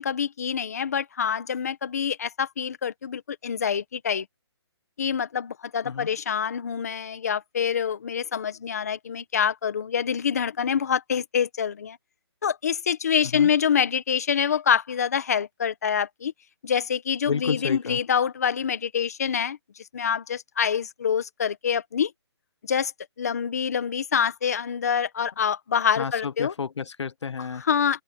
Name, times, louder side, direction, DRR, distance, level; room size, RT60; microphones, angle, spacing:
voice 1, 0.0-4.2 5.0-12.0 12.4-16.3 16.6-19.6 19.9-22.1 22.6-22.9 23.2-26.5 27.6-28.0, left 7 dB, 35° left, 1.5 m, -26 dB
voice 2, 17.3-18.0 26.0-27.6, left 6 dB, 80° left, 1.2 m, -30 dB
hypercardioid pair, 180°, 15 cm